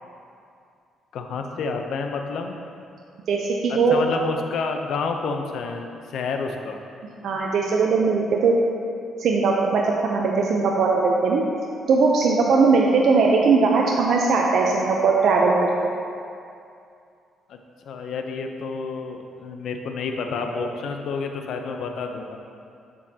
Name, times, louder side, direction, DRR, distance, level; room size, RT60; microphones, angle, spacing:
voice 1, 1.1-2.6 3.7-6.8 17.5-17.6 17.8-22.4, left 4 dB, 70° left, 4 dB, 0.6 m, -29 dB
voice 2, 3.3-4.0 7.2-8.5 9.2-11.4 11.9-15.5 15.8-15.9 20.5-20.6, right 4 dB, 70° right, -1 dB, 0.6 m, -19 dB
7.4 x 7.0 x 2.8 m, 2.5 s
cardioid pair, 90°, 0 cm